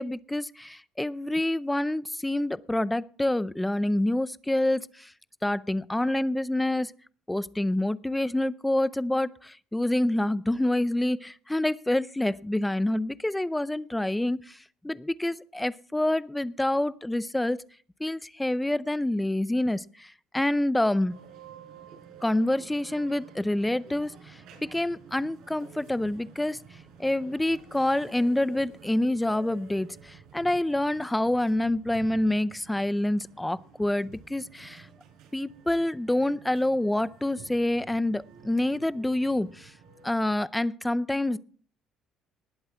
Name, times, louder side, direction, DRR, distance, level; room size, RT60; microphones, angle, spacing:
voice 1, 0.0-5.1 5.4-6.9 7.3-14.6 14.8-17.6 18.0-21.2 22.2-26.6 27.0-34.9 35.3-39.7 40.0-41.4, left 1 dB, 5° left, 17 dB, 0.5 m, -27 dB
sound 1, 21.1-40.3, right 6 dB, 70° right, 4.6 m, -51 dB
19.5 x 7.7 x 4.5 m, 0.44 s
cardioid pair, 155°, 0 cm